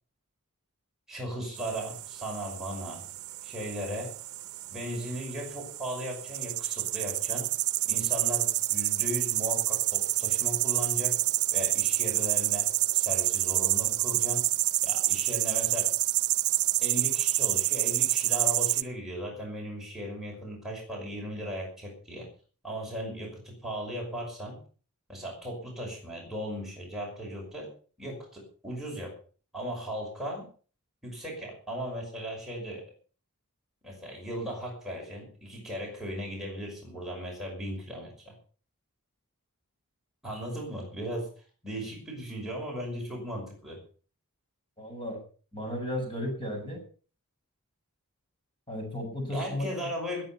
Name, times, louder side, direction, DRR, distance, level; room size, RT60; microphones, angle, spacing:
voice 1, 1.1-3.0 3.4-4.1 4.7-7.5 7.8-11.2 11.5-14.4 14.8-15.9 16.8-22.3 22.6-24.6 25.1-27.7 28.0-29.1 29.5-30.5 31.0-32.8 33.8-38.3 40.2-41.3 41.6-43.8 49.3-50.2, equal, ahead, -3 dB, 5.8 m, -37 dB
sound 1, 1.6-18.8, right 16 dB, 70° right, 0.8 m, -28 dB
voice 2, 44.8-45.2 45.5-46.8 48.7-49.9, left 1 dB, 25° left, 1 dB, 6.2 m, -34 dB
20.5 x 9.1 x 5.8 m, 0.41 s
head